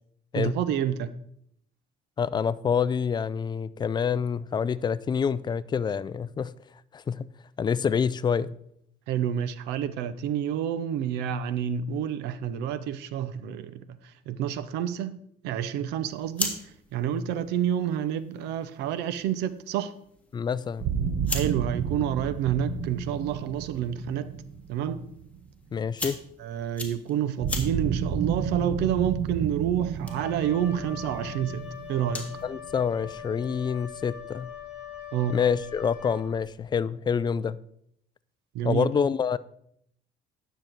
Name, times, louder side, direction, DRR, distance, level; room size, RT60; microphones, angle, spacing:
voice 1, 0.4-1.1 9.1-14.0 14.3-15.2 15.4-16.6 16.9-19.9 21.3-24.3 24.7-25.0 26.4-32.2 35.1-35.4 38.5-38.9, right 9 dB, 90° right, 0.6 m, -29 dB
voice 2, 2.2-6.5 6.9-7.3 7.6-8.6 20.3-20.8 25.7-26.2 32.4-34.5 35.3-37.6 38.6-39.4, left 6 dB, 25° left, 0.4 m, -27 dB
sound 1, 16.0-32.5, left 2 dB, 10° left, 1.6 m, -41 dB
sound 2, 20.8-25.8 27.4-33.1, right 7 dB, 60° right, 1.0 m, -32 dB
Wind instrument woodwind instrument, 30.0-36.6, left 9 dB, 10° right, 3.8 m, -42 dB
9.9 x 6.8 x 4.5 m
cardioid pair, 110°, 17 cm